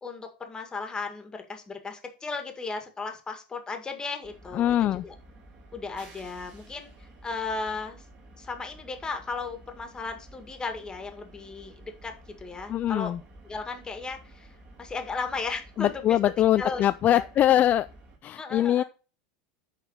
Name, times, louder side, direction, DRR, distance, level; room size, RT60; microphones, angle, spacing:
voice 1, 0.0-4.7 5.0-5.1 5.7-8.0 8.4-13.1 13.4-16.8 17.1-17.3 18.4-18.8, left 4 dB, 15° left, 1.8 m, -36 dB
sound 1, 4.2-18.2, right 1 dB, 35° right, 3.5 m, -51 dB
voice 2, 4.5-5.0 12.7-13.2 15.8-17.9 18.2-18.8, left 12 dB, 35° left, 0.3 m, -23 dB
10.0 x 4.1 x 5.5 m
supercardioid pair, 110°, 4 cm